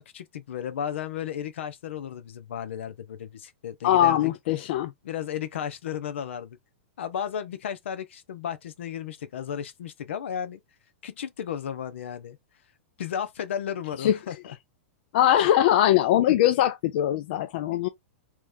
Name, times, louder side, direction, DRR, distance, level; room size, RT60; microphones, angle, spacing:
voice 1, 0.0-4.3 5.0-6.6 7.0-10.6 11.0-12.4 13.0-14.6 15.4-15.5, left 9 dB, 80° left, 0.9 m, -34 dB
voice 2, 3.8-4.9 14.0-14.1 15.1-17.9, left 11 dB, 55° left, 0.5 m, -21 dB
3.2 x 3.2 x 3.6 m
hypercardioid pair, 140°, 7 cm